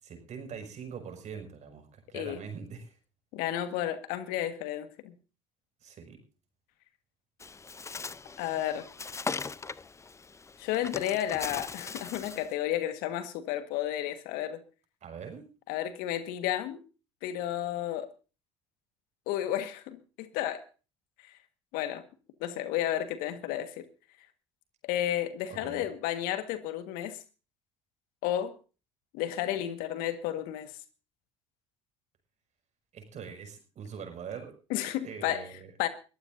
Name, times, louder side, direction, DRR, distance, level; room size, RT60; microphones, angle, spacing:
voice 1, 0.0-3.0 5.8-6.2 15.0-15.5 25.5-25.9 32.9-34.5 35.0-35.7, right 6 dB, 50° right, 5.9 m, -43 dB
voice 2, 3.3-5.1 8.4-8.9 10.6-14.6 15.7-16.8 17.2-18.1 19.3-20.6 21.2-21.3 21.7-22.0 22.4-23.8 24.8-27.2 28.2-28.5 29.1-30.7 34.7-35.4 35.8-35.9, left 12 dB, 70° left, 1.6 m, -32 dB
Bird, 7.4-12.5, left 4 dB, 20° left, 0.6 m, -39 dB
22.0 x 14.5 x 2.7 m
hypercardioid pair, 65°, 15 cm